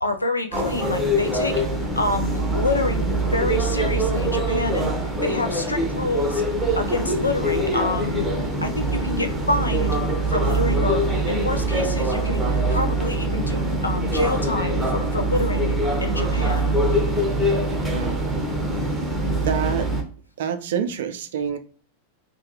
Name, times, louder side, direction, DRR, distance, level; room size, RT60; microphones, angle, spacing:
voice 1, 0.0-1.6 2.0-4.9 5.2-6.4 6.7-8.3 8.6-10.0 10.3-15.7 16.0-16.8, left 2 dB, 80° left, 0.4 m, -27 dB
sound 1, 0.5-20.0, right 1 dB, 10° right, 0.7 m, -23 dB
voice 2, 17.9-18.5 19.4-19.9 20.4-21.6, right 8 dB, 55° right, 0.4 m, -27 dB
2.3 x 2.3 x 2.8 m
figure-of-eight pair, 90°, 0 cm